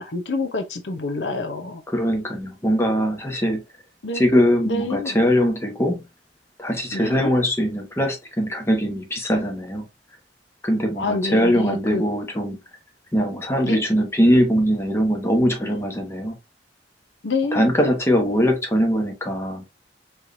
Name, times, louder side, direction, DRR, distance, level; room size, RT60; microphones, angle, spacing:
voice 1, 0.0-1.8 4.0-4.2 4.6-5.2 6.9-7.3 11.0-12.0 13.6-13.8 17.2-17.7, left 2 dB, 80° left, 0.8 m, -27 dB
voice 2, 1.9-3.6 4.1-6.0 6.6-9.9 10.6-12.6 13.1-16.3 17.5-19.6, equal, 15° left, 1.1 m, -21 dB
4.6 x 3.3 x 2.7 m
head